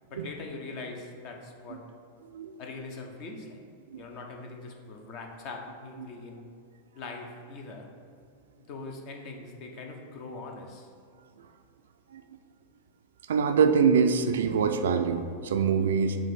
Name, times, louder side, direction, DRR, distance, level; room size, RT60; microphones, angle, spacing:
voice 1, 0.1-1.8 2.6-3.6 4.0-6.4 6.9-7.9 8.6-10.9, left 3 dB, 45° left, 2 dB, 0.8 m, -42 dB
voice 2, 13.3-16.2, right 6 dB, 60° right, 8 dB, 0.4 m, -24 dB
7.4 x 2.5 x 5.6 m, 2.3 s
figure-of-eight pair, 90°, 0 cm